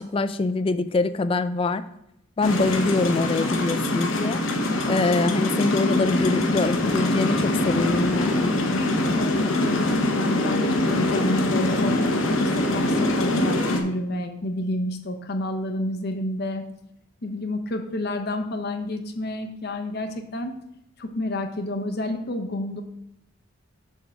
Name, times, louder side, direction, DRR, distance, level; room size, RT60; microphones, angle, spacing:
voice 1, 0.0-1.8 2.4-4.4 4.9-8.6, left 3 dB, 25° left, 12 dB, 0.3 m, -24 dB
sound 1, 2.4-13.8, left 1 dB, 75° left, 1.0 m, -23 dB
voice 2, 9.1-12.0 12.4-16.6 17.2-20.5 21.0-22.8, left 1 dB, 50° left, 6 dB, 0.8 m, -29 dB
7.1 x 3.7 x 5.8 m, 0.81 s
head